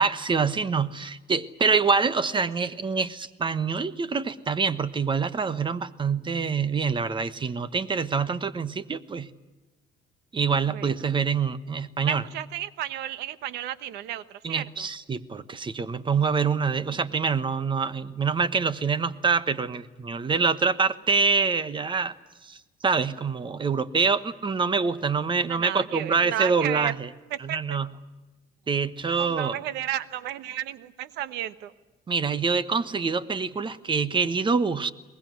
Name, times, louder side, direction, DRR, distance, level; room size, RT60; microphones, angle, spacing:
voice 1, 0.0-9.3 10.3-12.2 14.4-22.1 22.4-22.6 22.8-26.9 27.4-27.9 28.7-29.6 32.1-34.9, right 5 dB, 30° right, 16 dB, 1.2 m, -25 dB
voice 2, 2.3-2.7 10.6-11.0 12.0-14.9 25.4-26.9 27.3-27.8 29.1-31.7, right 12 dB, 90° right, 16 dB, 1.2 m, -33 dB
23.0 x 20.5 x 9.5 m, 1.1 s
cardioid pair, 110°, 17 cm